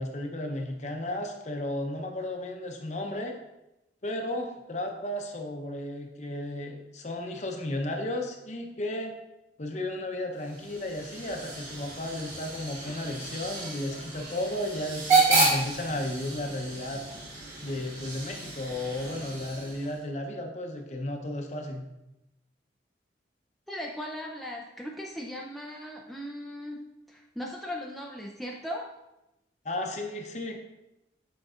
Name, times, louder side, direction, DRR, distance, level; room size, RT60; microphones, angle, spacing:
voice 1, 0.0-3.4 4.0-9.2 9.6-17.0 17.6-21.8 29.6-30.6, left 1 dB, 40° left, 3 dB, 0.7 m, -34 dB
Hiss / Train / Alarm, 10.4-20.0, right 3 dB, 40° right, 1.8 m, -30 dB
voice 2, 23.7-26.8 27.1-28.9, equal, ahead, -2 dB, 0.4 m, -38 dB
7.8 x 5.3 x 2.4 m, 0.93 s
head